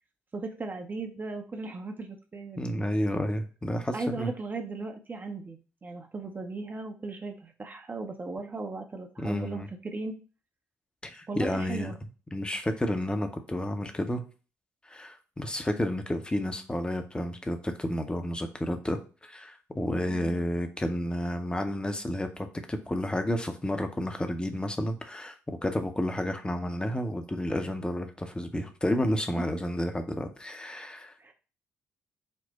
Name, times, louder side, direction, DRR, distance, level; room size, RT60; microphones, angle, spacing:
voice 1, 0.3-2.7 3.9-10.1 11.3-12.0 29.3-29.5 31.2-31.3, right 3 dB, 25° right, 4 dB, 0.6 m, -37 dB
voice 2, 2.6-4.3 9.2-9.7 11.0-11.9 12.3-14.2 14.9-31.1, left 1 dB, 10° left, 6 dB, 0.6 m, -31 dB
4.4 x 2.1 x 4.1 m, 0.36 s
figure-of-eight pair, 40°, 7 cm